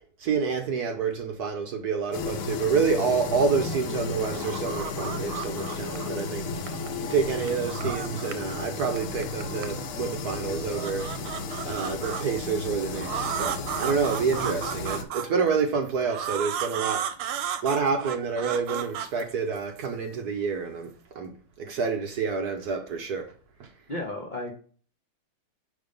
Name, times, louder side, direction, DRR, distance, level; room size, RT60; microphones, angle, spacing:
voice 1, 0.2-6.4 7.0-11.1 11.7-17.0 17.6-20.9 21.1-21.3 21.6-23.3 23.6-23.7, right 5 dB, 60° right, 1.1 m, -28 dB
sound 1, 2.1-15.0, left 4 dB, 85° left, 1.7 m, -33 dB
sound 2, 3.3-3.9 4.2-6.2 6.6-8.5 8.8-10.1 10.5-12.2 12.9-15.5 16.1-19.8, right 9 dB, 80° right, 1.5 m, -34 dB
voice 2, 23.9-24.5, left 1 dB, 65° left, 0.4 m, -33 dB
5.2 x 3.9 x 5.1 m
omnidirectional pair, 2.3 m